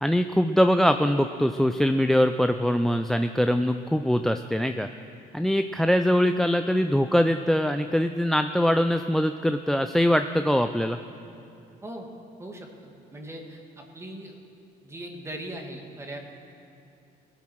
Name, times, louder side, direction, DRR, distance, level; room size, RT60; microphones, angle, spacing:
voice 1, 0.0-4.9 5.3-11.0, equal, ahead, 8 dB, 0.4 m, -23 dB
voice 2, 12.4-13.6 13.9-14.3 14.8-16.2, right 1 dB, 15° right, 2 dB, 1.8 m, -39 dB
19.0 x 8.7 x 6.2 m, 2.7 s
cardioid pair, 110°, 17 cm